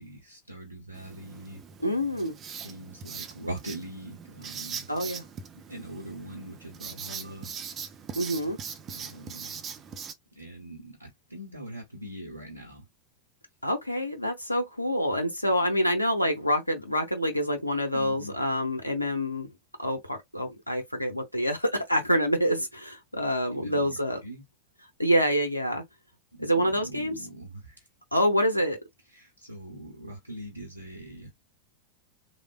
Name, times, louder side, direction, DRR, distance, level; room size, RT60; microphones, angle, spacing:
voice 1, 0.0-1.6 2.6-4.9 5.7-7.5 8.9-9.6 10.4-12.8 17.9-18.3 23.5-23.9 24.2-24.4 26.3-27.7 29.1-31.3, right 1 dB, 85° right, 0.8 m, -42 dB
Writing, 0.9-10.1, right 7 dB, 25° right, 0.5 m, -41 dB
voice 2, 1.8-2.4 4.9-5.3 8.2-8.6 13.6-19.5 19.8-24.2 25.0-25.8 26.4-27.3 28.1-28.8, equal, 85° left, 0.6 m, -27 dB
3.2 x 2.1 x 2.3 m
figure-of-eight pair, 90°, 0 cm